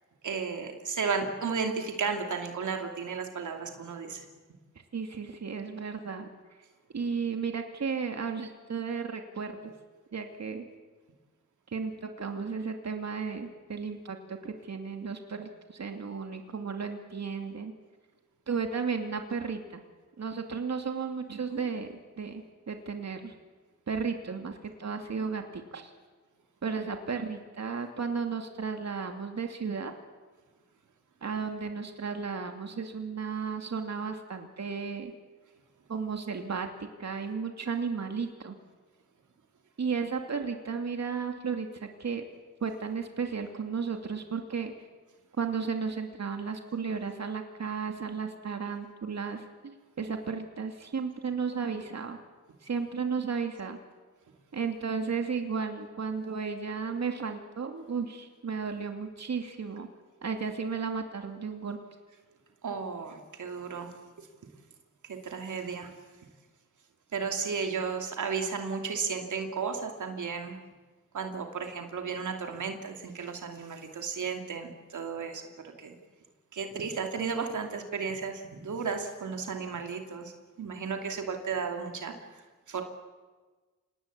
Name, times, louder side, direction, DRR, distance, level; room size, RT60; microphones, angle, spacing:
voice 1, 0.2-4.2 21.3-21.6 62.6-63.9 64.2-64.3 65.0-65.9 67.1-70.6 71.1-76.0 76.5-80.3 80.6-82.1 82.7-82.8, right 5 dB, 80° right, 4 dB, 2.7 m, -34 dB
voice 2, 4.9-6.3 6.9-9.6 10.1-10.6 11.7-17.7 18.5-19.8 20.2-21.9 22.2-23.3 23.9-25.9 26.6-29.9 31.2-35.1 35.9-38.6 39.8-42.3 42.6-44.7 45.4-52.2 52.6-53.8 54.5-59.9 60.2-61.8, right 5 dB, 65° right, 5 dB, 2.6 m, -34 dB
26.5 x 19.5 x 8.4 m, 1.3 s
cardioid pair, 60°, 30 cm